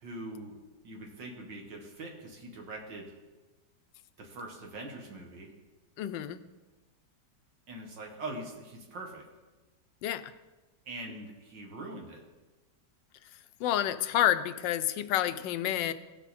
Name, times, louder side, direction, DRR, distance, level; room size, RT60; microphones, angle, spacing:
voice 1, 0.0-0.6 0.8-3.2 4.2-5.5 7.7-9.2 10.9-12.2, right 2 dB, 85° right, 1 dB, 2.3 m, -42 dB
voice 2, 6.0-6.4 10.0-10.2 13.6-15.9, left 11 dB, 90° left, 12 dB, 1.3 m, -29 dB
16.5 x 5.8 x 4.2 m, 1.2 s
omnidirectional pair, 1.9 m